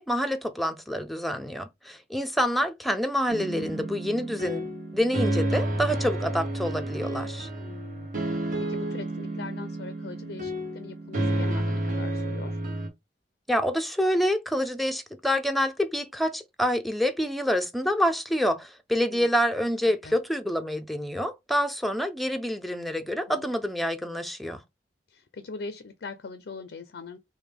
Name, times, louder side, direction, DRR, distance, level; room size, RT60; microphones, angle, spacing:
voice 1, 0.0-4.7 4.9-7.5 13.5-24.6, equal, ahead, 0.5 m, -27 dB
sound 1, 3.3-12.9, right 1 dB, 45° right, 1.2 m, -30 dB
voice 2, 7.6-12.6 19.1-19.3 19.8-20.2 23.3-23.5 25.1-27.2, left 4 dB, 70° left, 0.4 m, -42 dB
4.7 x 2.1 x 3.5 m
head